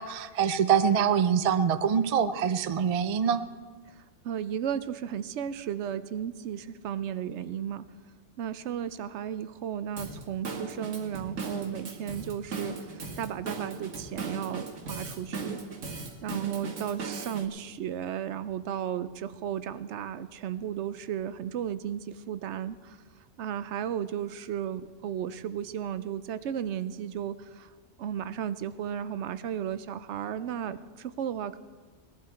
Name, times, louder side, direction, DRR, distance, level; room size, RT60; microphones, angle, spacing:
voice 1, 0.0-3.4, right 7 dB, 50° right, 11 dB, 0.4 m, -25 dB
voice 2, 3.9-7.8 8.4-15.6 16.2-23.0 23.4-27.7 28.0-31.6, right 9 dB, 70° right, 13 dB, 0.8 m, -34 dB
Drum kit / Drum, 10.0-17.5, right 4 dB, 90° right, 1.6 m, -38 dB
19.5 x 11.5 x 4.4 m, 1.4 s
omnidirectional pair, 1.3 m